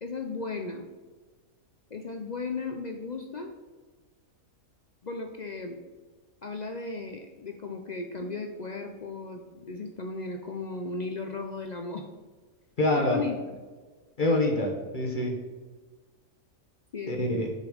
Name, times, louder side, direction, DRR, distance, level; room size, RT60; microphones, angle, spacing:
voice 1, 0.0-0.9 1.9-3.5 5.0-5.8 6.4-12.1 13.0-13.6 16.9-17.5, left 4 dB, 60° left, 4 dB, 0.4 m, -36 dB
voice 2, 12.8-13.2 14.2-15.3 17.1-17.5, left 1 dB, 40° left, 2 dB, 1.0 m, -26 dB
6.6 x 5.1 x 5.0 m, 1.4 s
omnidirectional pair, 1.5 m